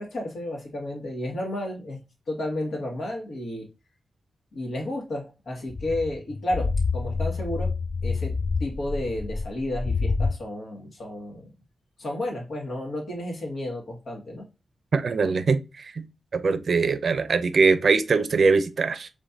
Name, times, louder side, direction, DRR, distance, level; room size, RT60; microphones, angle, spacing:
voice 1, 0.0-2.0 2.3-3.7 4.5-7.7 8.0-8.3 8.6-11.5 12.0-14.4, left 1 dB, 70° left, 1.9 m, -32 dB
sound 1, 5.7-10.3, left 4 dB, 35° left, 0.3 m, -27 dB
voice 2, 14.9-16.0 16.3-19.1, right 4 dB, 55° right, 0.6 m, -22 dB
5.1 x 3.4 x 2.8 m
wide cardioid pair, 130°, 0 cm